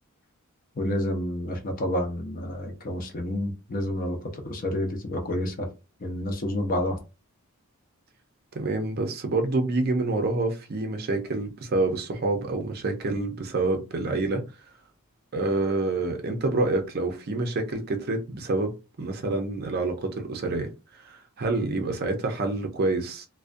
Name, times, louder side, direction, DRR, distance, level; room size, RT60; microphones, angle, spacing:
voice 1, 0.7-5.7 6.0-7.0, left 1 dB, 40° left, 0.6 m, -29 dB
voice 2, 8.5-14.4 15.3-23.3, right 2 dB, 45° right, 0.5 m, -27 dB
2.4 x 2.1 x 2.5 m
head